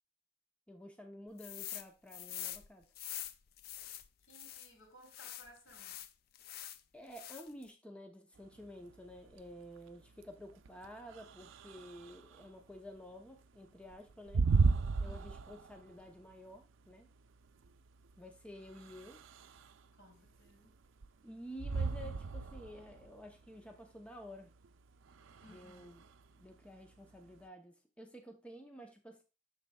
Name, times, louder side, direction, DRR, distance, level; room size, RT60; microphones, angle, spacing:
voice 1, 0.7-2.9 6.9-14.5 15.0-17.1 18.2-19.2 21.2-24.5 25.5-26.0 26.3-29.2, equal, 5° left, 4 dB, 0.7 m, -51 dB
sound 1, 1.4-4.7 5.1-6.8 7.1-7.6, left 12 dB, 50° left, 0.4 m, -45 dB
voice 2, 4.3-6.0 15.0-15.4 20.0-20.7 25.4-26.0, equal, 85° left, -1 dB, 3.1 m, -60 dB
sound 2, 8.4-27.4, right 4 dB, 90° right, 0.5 m, -37 dB
11.5 x 4.0 x 2.3 m, 0.30 s
head